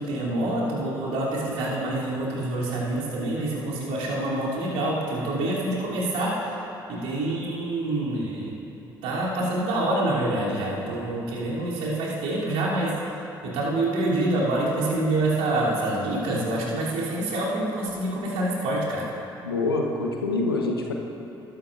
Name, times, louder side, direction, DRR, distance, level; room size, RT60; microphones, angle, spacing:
voice 1, 0.0-6.4 6.9-8.5 9.0-13.0 13.4-19.1, right 1 dB, 65° right, -7 dB, 3.1 m, -26 dB
voice 2, 19.4-20.9, left 3 dB, 85° left, 1 dB, 1.0 m, -25 dB
20.0 x 11.5 x 2.6 m, 2.9 s
figure-of-eight pair, 45°, 12 cm